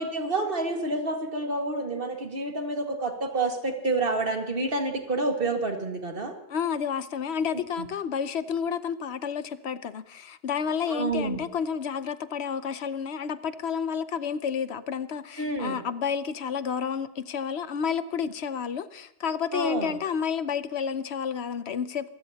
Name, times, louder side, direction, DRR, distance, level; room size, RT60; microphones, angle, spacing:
voice 1, 0.0-6.4 7.8-7.9 10.9-11.4 15.4-15.8 19.5-20.0, right 2 dB, 60° right, 3 dB, 2.1 m, -28 dB
voice 2, 6.5-22.1, left 7 dB, 80° left, 13 dB, 1.1 m, -30 dB
26.5 x 15.0 x 2.9 m, 0.85 s
omnidirectional pair, 1.1 m